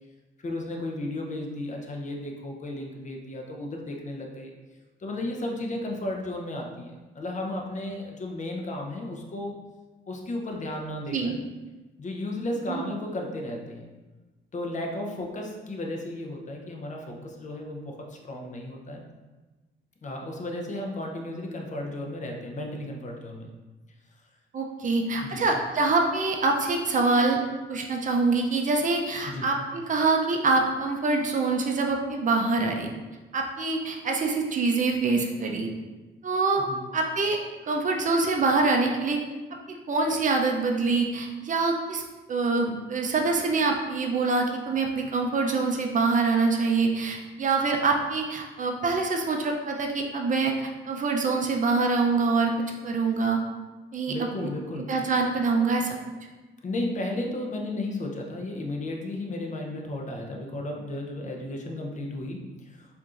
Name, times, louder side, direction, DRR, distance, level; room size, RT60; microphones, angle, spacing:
voice 1, 0.4-4.5 5.0-9.5 10.1-11.4 12.0-13.9 14.5-19.0 20.0-23.5 25.2-25.5 29.3-29.5 36.7-36.8 54.1-54.9 56.6-62.9, left 1 dB, 40° left, 1 dB, 0.6 m, -34 dB
voice 2, 24.5-27.4 27.7-32.9 33.3-35.7 36.2-36.6 36.9-37.4 37.7-39.2 39.7-42.0 42.3-52.5 52.8-53.4 53.9-54.5 54.9-56.0, right 3 dB, 40° right, 2 dB, 0.5 m, -25 dB
4.5 x 2.6 x 2.4 m, 1.2 s
cardioid pair, 90°, 20 cm